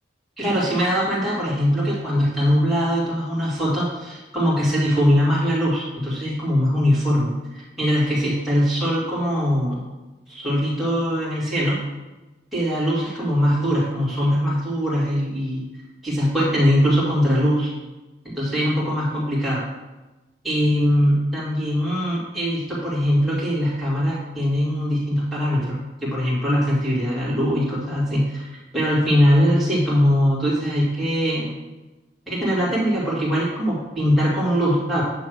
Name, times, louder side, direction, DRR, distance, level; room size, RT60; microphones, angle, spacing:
voice 1, 0.4-9.8 10.3-11.8 12.5-15.7 16.0-17.7 18.2-19.6 20.4-31.6 32.3-35.0, equal, ahead, -9 dB, 2.3 m, -21 dB
8.6 x 3.2 x 6.4 m, 1.1 s
head